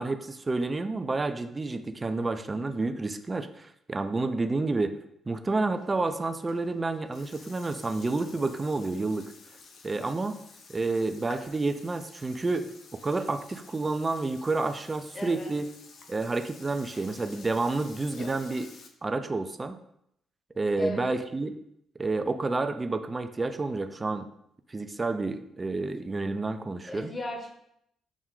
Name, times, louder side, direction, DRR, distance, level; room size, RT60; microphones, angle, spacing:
voice 1, 0.0-5.0 5.3-9.3 9.8-10.4 10.7-15.7 16.1-18.7 19.0-19.8 20.6-21.6 22.0-24.3 24.7-27.1, right 3 dB, 25° right, 9 dB, 0.4 m, -29 dB
Burping eructation, 5.7-18.9, left 4 dB, 65° left, 0.6 m, -51 dB
voice 2, 15.1-15.5 20.8-21.1 26.9-27.5, left 2 dB, 30° left, 2 dB, 1.0 m, -36 dB
6.0 x 2.2 x 3.6 m, 0.76 s
cardioid pair, 90°, 0 cm